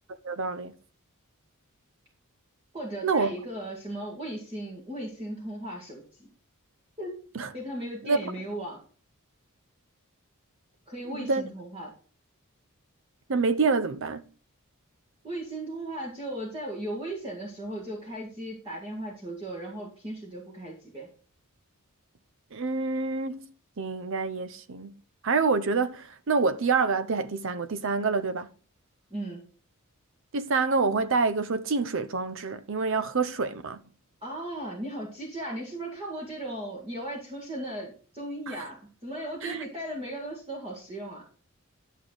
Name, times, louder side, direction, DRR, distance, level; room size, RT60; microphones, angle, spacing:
voice 1, 0.2-0.7 3.0-3.3 7.3-7.5 8.0-8.2 11.1-11.5 13.3-14.2 22.5-23.5 23.8-25.0 25.2-28.5 30.3-33.8 38.5-38.6 39.4-39.6, right 4 dB, 60° right, 0.6 m, -27 dB
voice 2, 2.7-6.3 7.0-7.2 7.5-8.8 10.9-11.9 15.2-21.1 29.1-29.4 34.2-41.2, right 1 dB, 25° right, 1.9 m, -37 dB
11.5 x 6.3 x 3.9 m
head